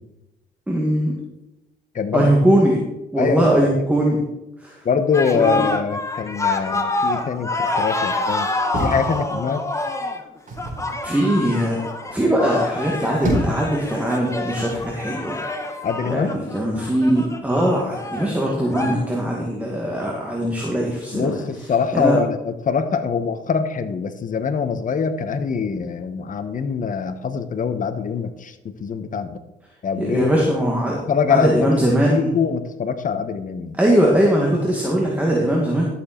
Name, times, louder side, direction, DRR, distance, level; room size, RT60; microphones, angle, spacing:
voice 1, 0.7-1.1 2.1-2.8 3.1-4.2 4.6-4.8 5.3-5.7 11.0-11.8 12.1-15.4 16.1-21.4 21.9-22.2 30.0-31.0 31.3-32.3 33.8-35.9, right 1 dB, 5° right, -2 dB, 2.1 m, -20 dB
voice 2, 1.9-2.3 3.2-3.7 4.8-8.5 8.8-9.6 15.8-16.3 21.1-29.4 29.8-30.3 31.1-31.7 32.1-33.8, left 6 dB, 40° left, 9 dB, 1.0 m, -24 dB
sound 1, 5.1-18.9, left 2 dB, 15° left, 1.3 m, -27 dB
sound 2, 8.7-9.8 10.5-10.9 12.8-13.7 14.7-15.0, equal, 40° right, 4.4 m, -26 dB
12.0 x 7.1 x 4.4 m, 0.95 s
cardioid pair, 90°, 20 cm